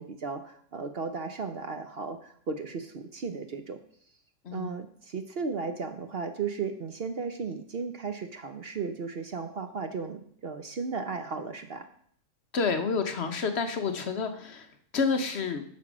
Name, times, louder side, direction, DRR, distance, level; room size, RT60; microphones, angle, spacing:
voice 1, 0.0-3.8 4.5-11.8, right 5 dB, 50° right, 8 dB, 0.8 m, -35 dB
voice 2, 4.4-4.8 12.5-15.6, left 5 dB, 55° left, 7 dB, 1.0 m, -29 dB
8.8 x 6.0 x 6.1 m, 0.62 s
omnidirectional pair, 1.5 m